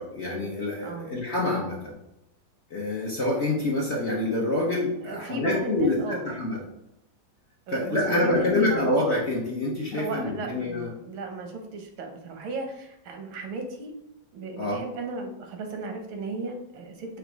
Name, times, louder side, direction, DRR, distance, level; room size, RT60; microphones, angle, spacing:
voice 1, 0.0-1.9 2.7-6.6 7.7-10.9 14.6-14.8, left 2 dB, 50° left, -3 dB, 0.8 m, -26 dB
voice 2, 5.0-6.2 7.7-8.9 9.9-13.9 14.3-17.2, right 3 dB, 85° right, 3 dB, 1.7 m, -35 dB
5.1 x 2.3 x 4.5 m, 0.86 s
omnidirectional pair, 2.1 m